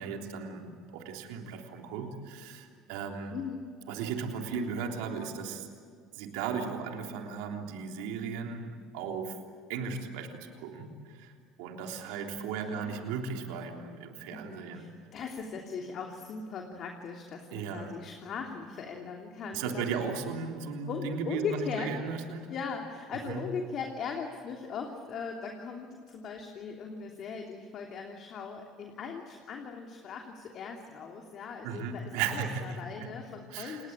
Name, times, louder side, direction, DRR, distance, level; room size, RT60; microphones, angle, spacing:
voice 1, 0.0-3.3 3.9-5.7 6.1-9.4 9.7-11.3 11.6-14.9 17.5-18.0 19.5-22.5 23.2-23.4 31.6-32.6 33.0-33.1 33.5-33.9, right 6 dB, 80° right, 3 dB, 3.4 m, -36 dB
voice 2, 3.3-3.7 11.9-12.2 12.6-13.3 14.3-20.0 20.9-21.9 22.5-33.9, left 5 dB, 55° left, 2 dB, 3.0 m, -39 dB
28.5 x 20.0 x 8.9 m, 2.3 s
supercardioid pair, 90°, 0 cm